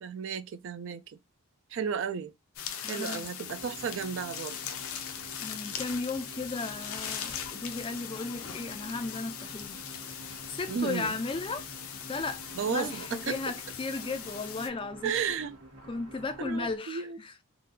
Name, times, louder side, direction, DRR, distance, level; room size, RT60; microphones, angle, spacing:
voice 1, 0.0-1.2 1.7-2.3 2.9-4.6 10.7-11.1 12.6-13.4 15.0-15.5 16.4-17.2, right 6 dB, 55° right, 0.3 m, -33 dB
sound 1, 2.6-14.7, left 8 dB, 70° left, 0.6 m, -40 dB
voice 2, 2.8-3.3 5.4-9.8 10.2-11.7 12.1-12.4 12.7-15.1 15.9-17.3, left 3 dB, 25° left, 0.4 m, -35 dB
sound 2, 3.5-16.8, right 1 dB, 75° right, 1.7 m, -49 dB
3.7 x 2.2 x 2.4 m
head